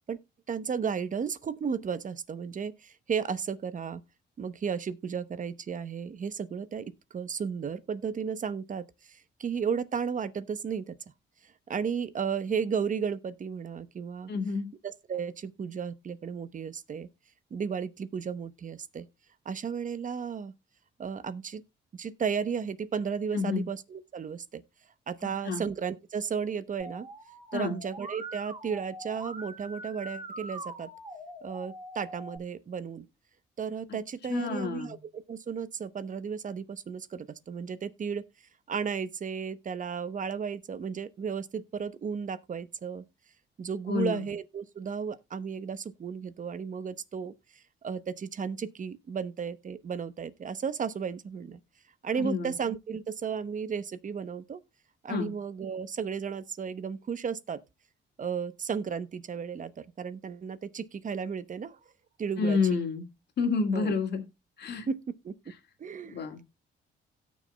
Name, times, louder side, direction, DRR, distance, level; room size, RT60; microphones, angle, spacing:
voice 1, 0.5-4.0 4.4-11.0 11.4-14.3 14.8-17.1 17.5-19.1 19.4-20.5 21.0-21.6 21.9-24.6 25.1-27.1 27.5-30.9 31.4-33.0 33.6-38.2 38.7-43.0 43.6-51.6 52.0-54.6 55.0-57.6 58.2-61.8 62.2-62.8 63.7-64.0 64.9-65.3 65.8-66.3, right 6 dB, 40° right, 0.8 m, -34 dB
voice 2, 14.3-14.7 23.3-23.6 25.2-25.6 27.5-27.8 34.3-35.0 43.9-44.2 52.2-52.5 55.1-55.3 62.4-63.0 63.4-64.2 64.6-64.9 66.1-66.4, left 4 dB, 55° left, 2.3 m, -29 dB
Musical instrument, 26.8-32.4, right 1 dB, 20° right, 4.0 m, -43 dB
17.5 x 6.2 x 2.2 m
cardioid pair, 90°, 20 cm